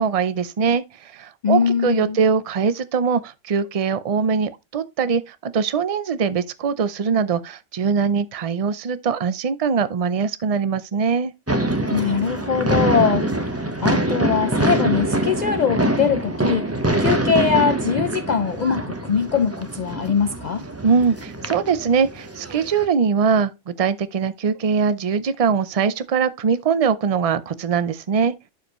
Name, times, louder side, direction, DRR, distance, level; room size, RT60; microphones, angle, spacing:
voice 1, 0.0-11.3 20.8-28.3, right 6 dB, 40° right, 0.6 m, -22 dB
voice 2, 1.4-2.2 11.9-16.7 17.0-20.7, left 6 dB, 55° left, 0.5 m, -22 dB
sound 1, 11.5-22.8, right 1 dB, 15° right, 1.0 m, -24 dB
11.5 x 5.1 x 3.0 m
omnidirectional pair, 1.2 m